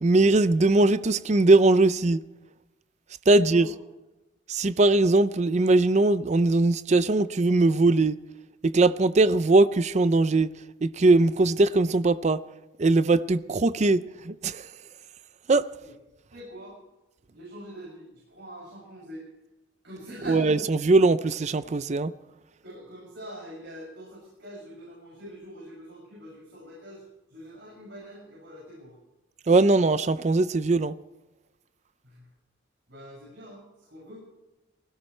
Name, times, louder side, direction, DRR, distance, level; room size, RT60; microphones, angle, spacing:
voice 1, 0.0-2.2 3.3-3.6 4.5-8.2 8.6-10.5 10.8-12.4 12.8-14.7 15.5-15.6 20.3-22.1 29.5-30.9, right 2 dB, 35° right, 0.5 m, -20 dB
voice 2, 3.3-3.7 15.8-15.9 16.3-16.8 17.3-19.3 19.8-20.9 22.6-27.0 27.3-28.9 32.0-32.3 32.9-34.3, equal, 70° right, 6.7 m, -43 dB
20.0 x 17.5 x 3.2 m
head